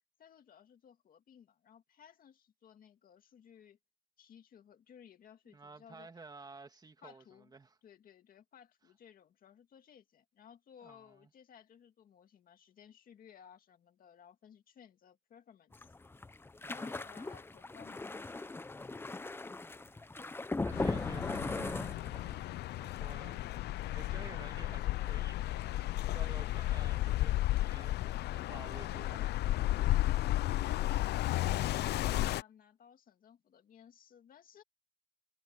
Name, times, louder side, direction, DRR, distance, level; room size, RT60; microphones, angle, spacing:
voice 1, 0.2-3.8 4.2-6.1 7.0-7.5 7.8-15.9 16.7-18.7 29.7-34.6, left 8 dB, 55° left, 2.3 m, -59 dB
voice 2, 5.5-7.2 7.5-7.7 10.8-11.3 16.6-17.0 19.8-20.3 20.6-21.8 22.7-23.4 23.7-29.4, right 4 dB, 25° right, 2.5 m, -53 dB
sound 1, 15.7-22.5 22.8-23.1 23.4-23.5, left 3 dB, 15° left, 0.8 m, -39 dB
sound 2, 20.7-32.4, left 15 dB, 75° left, 0.5 m, -33 dB
cardioid pair, 135°, 17 cm